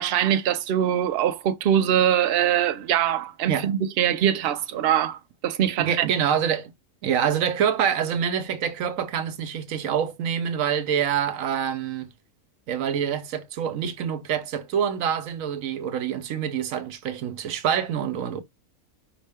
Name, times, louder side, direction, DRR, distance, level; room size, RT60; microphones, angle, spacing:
voice 1, 0.0-6.0, right 10 dB, 60° right, 0.7 m, -23 dB
voice 2, 5.8-6.7 7.0-12.1 12.7-18.4, right 8 dB, 85° right, 1.1 m, -26 dB
5.4 x 2.8 x 3.5 m
omnidirectional pair, 1.4 m